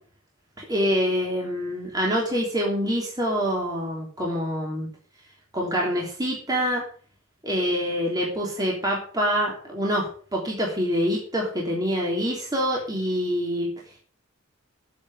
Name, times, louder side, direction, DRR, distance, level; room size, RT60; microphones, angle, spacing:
voice 1, 0.6-4.9 5.5-6.8 7.4-13.7, equal, 20° right, -2 dB, 3.2 m, -26 dB
8.6 x 8.5 x 8.0 m, 0.43 s
head